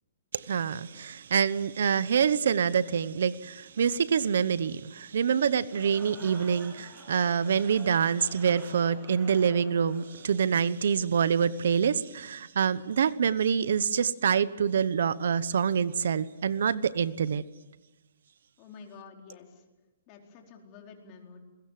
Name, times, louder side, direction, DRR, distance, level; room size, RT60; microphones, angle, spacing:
voice 1, 0.3-17.4, right 7 dB, 70° right, 1.0 m, -26 dB
sound 1, 5.6-10.8, equal, 10° right, 7.5 m, -49 dB
voice 2, 18.6-19.6 20.1-21.4, left 5 dB, 30° left, 4.4 m, -49 dB
27.5 x 21.5 x 7.6 m
hypercardioid pair, 160°, 0 cm